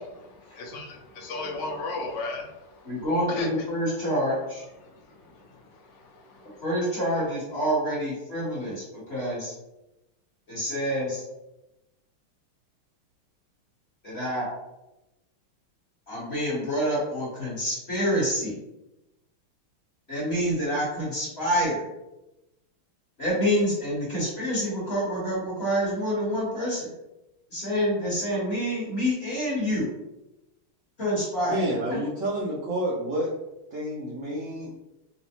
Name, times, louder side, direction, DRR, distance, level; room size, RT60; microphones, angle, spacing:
voice 1, 0.2-3.5 4.8-6.6, left 3 dB, 70° left, 0 dB, 1.1 m, -37 dB
voice 2, 2.8-4.6 6.6-9.5 10.5-11.2 14.0-14.5 16.1-18.6 20.1-21.8 23.2-26.9 27.5-29.9 31.0-31.6, equal, 40° left, -7 dB, 1.2 m, -27 dB
voice 3, 31.5-33.3 33.7-34.7, right 1 dB, 90° right, -6 dB, 0.6 m, -29 dB
4.3 x 2.0 x 2.8 m, 0.95 s
omnidirectional pair, 2.3 m